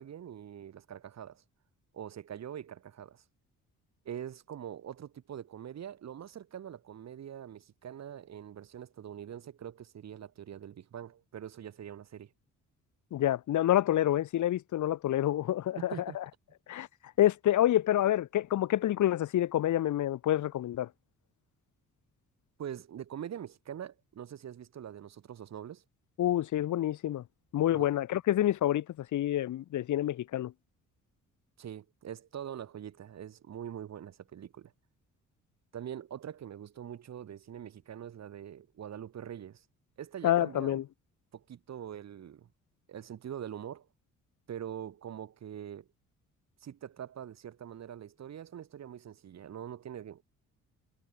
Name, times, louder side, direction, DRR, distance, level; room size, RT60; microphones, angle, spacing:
voice 1, 0.0-1.4 1.9-3.2 4.0-12.3 15.8-16.2 22.6-25.8 27.7-27.9 31.6-34.7 35.7-39.6 40.0-40.8 41.3-42.5 42.9-43.9 44.5-45.9 46.6-50.2, right 9 dB, 60° right, 4.3 m, -43 dB
voice 2, 13.1-16.2 16.7-16.9 17.2-20.9 26.2-27.2 27.5-30.5 40.2-40.8, left 12 dB, 75° left, 3.4 m, -28 dB
cardioid pair, 90°, 30 cm